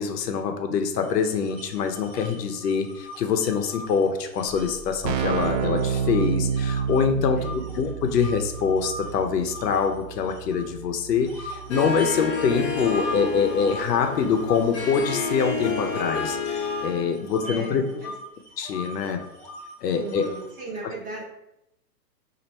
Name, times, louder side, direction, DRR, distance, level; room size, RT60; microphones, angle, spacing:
voice 1, 0.0-17.8 18.6-19.2 19.8-20.3, left 6 dB, 75° left, 6 dB, 0.7 m, -25 dB
sound 1, 1.0-7.0 7.4-10.8 11.2-20.6, left 1 dB, 20° left, 0.8 m, -40 dB
Keyboard (musical), 4.4-4.5 4.7-15.4, right 7 dB, 85° right, 0.5 m, -31 dB
voice 2, 7.1-7.7 17.4-18.2 19.9-21.2, right 2 dB, 25° right, -3 dB, 0.9 m, -37 dB
Harp, 11.7-17.2, left 4 dB, 45° left, 0.9 m, -30 dB
3.1 x 2.6 x 4.2 m, 0.83 s
hypercardioid pair, 155°, 49 cm